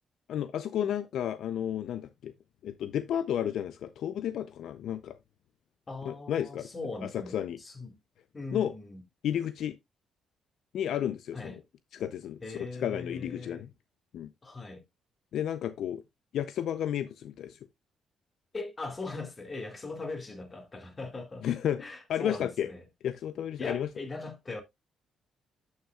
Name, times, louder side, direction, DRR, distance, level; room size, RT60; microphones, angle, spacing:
voice 1, 0.3-2.3 2.6-5.2 6.0-6.7 7.1-7.6 8.5-8.7 9.2-9.8 10.7-11.6 11.9-12.4 12.8-13.7 14.1-14.3 15.3-16.0 16.3-17.6 21.4-21.8 22.1-22.7 23.0-23.9, left 10 dB, 75° left, 0.5 m, -32 dB
voice 2, 5.9-8.0 8.3-9.0 11.3-11.6 12.4-13.6 14.4-14.8 18.5-21.5 21.8-22.8 23.6-24.6, left 3 dB, 30° left, 2.5 m, -40 dB
11.0 x 6.5 x 2.4 m
cardioid pair, 90°, 0 cm